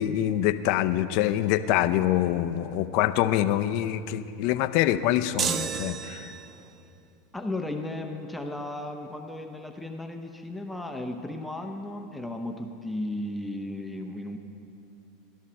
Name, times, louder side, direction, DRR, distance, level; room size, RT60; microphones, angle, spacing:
voice 1, 0.0-6.3, left 12 dB, 60° left, 11 dB, 0.5 m, -25 dB
sound 1, 5.4-6.7, right 7 dB, 35° right, 0.5 m, -31 dB
voice 2, 7.3-14.4, left 1 dB, 5° left, 4 dB, 0.7 m, -35 dB
13.5 x 12.0 x 4.3 m, 2.7 s
hypercardioid pair, 105°, 0 cm